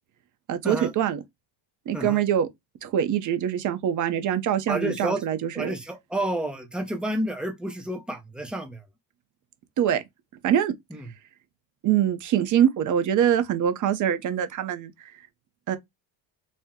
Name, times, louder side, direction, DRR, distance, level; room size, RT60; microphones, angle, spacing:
voice 1, 0.5-1.2 1.9-2.5 2.8-5.7 9.8-10.0 10.4-10.7 11.8-15.1 15.7-15.8, right 9 dB, 45° right, 0.7 m, -24 dB
voice 2, 4.7-5.2 5.5-8.8 10.9-11.1, right 1 dB, ahead, 0.5 m, -30 dB
4.3 x 2.1 x 3.6 m
cardioid pair, 160°, 43 cm